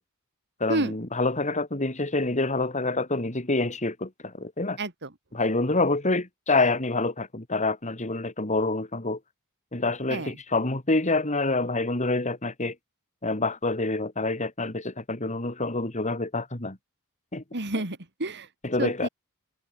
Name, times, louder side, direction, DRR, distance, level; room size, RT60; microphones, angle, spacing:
voice 1, 0.6-4.8 5.3-9.2 9.7-12.7 13.2-16.8 17.3-17.4 18.6-19.1, left 2 dB, 35° left, 3.3 m, -27 dB
voice 2, 4.8-5.1 10.1-10.3 17.5-18.5 18.8-19.1, right 2 dB, 50° right, 3.4 m, -29 dB
head